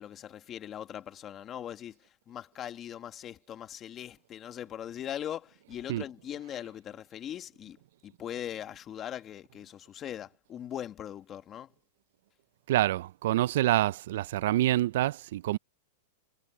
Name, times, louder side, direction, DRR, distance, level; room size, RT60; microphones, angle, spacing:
voice 1, 0.0-7.8 8.0-11.7, left 10 dB, 25° left, 1.5 m, -40 dB
voice 2, 12.7-15.6, right 14 dB, 60° right, 0.4 m, -26 dB
supercardioid pair, 155°, 0 cm